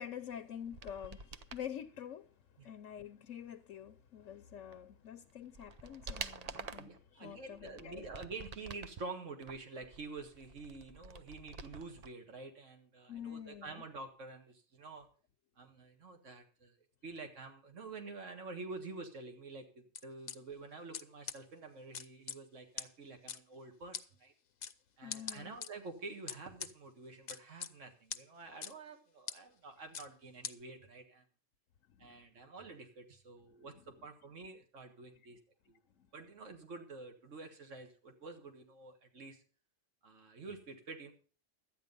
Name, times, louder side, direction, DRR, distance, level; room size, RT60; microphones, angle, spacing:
voice 1, 0.0-8.1 13.1-13.8 25.0-25.5 31.9-32.1 33.7-33.8 36.0-36.1, left 9 dB, 85° left, 1.1 m, -47 dB
sound 1, 0.6-1.7 4.7-4.8 5.3-7.0 7.5-9.0 9.4-12.1 12.4-12.5, right 4 dB, 40° right, 0.6 m, -48 dB
voice 2, 6.8-15.1 15.6-16.8 17.0-24.3 25.0-31.2 32.0-35.4 35.7-35.8 36.1-39.4 40.0-41.1, right 3 dB, 75° right, 1.9 m, -48 dB
sound 2, 19.9-20.3 20.9-21.0 21.3-21.4 21.9-22.4 22.8-22.9 23.3-23.4 23.9-24.0 24.6-24.7 25.1-25.7 26.3-26.7 27.3-27.7 28.1-28.2 28.6-28.7 29.3-29.4 29.9-30.1 30.4-30.5, left 7 dB, 45° left, 0.6 m, -41 dB
13.0 x 9.2 x 5.3 m
omnidirectional pair, 1.3 m